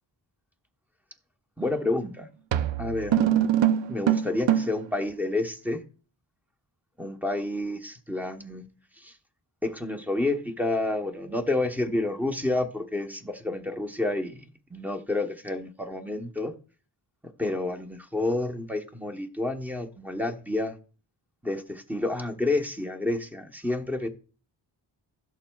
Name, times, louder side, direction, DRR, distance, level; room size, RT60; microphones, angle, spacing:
voice 1, 1.6-2.3 2.8-3.2 3.9-5.8 7.0-8.7 9.0-9.2 9.6-14.4 14.7-16.5 17.4-20.8 21.4-24.1, left 2 dB, 5° right, 0.9 m, -29 dB
sound 1, 1.6-1.9 2.5-4.9, right 10 dB, 80° right, 0.6 m, -23 dB
16.5 x 7.2 x 2.3 m
wide cardioid pair, 125°, 44 cm